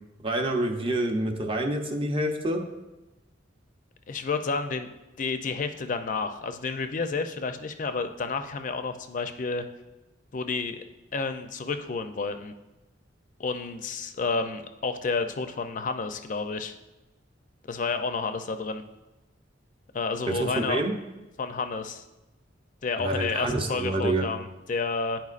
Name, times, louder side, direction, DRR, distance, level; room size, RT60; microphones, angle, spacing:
voice 1, 0.2-2.6 20.3-21.0 23.0-24.2, right 1 dB, 30° right, 3 dB, 0.7 m, -27 dB
voice 2, 4.1-4.9 5.2-9.6 10.3-10.8 11.1-12.5 13.4-16.7 17.7-18.8 19.9-20.8 21.4-22.0 22.8-25.2, left 4 dB, 45° left, 8 dB, 0.5 m, -30 dB
10.5 x 4.5 x 2.5 m, 1.1 s
head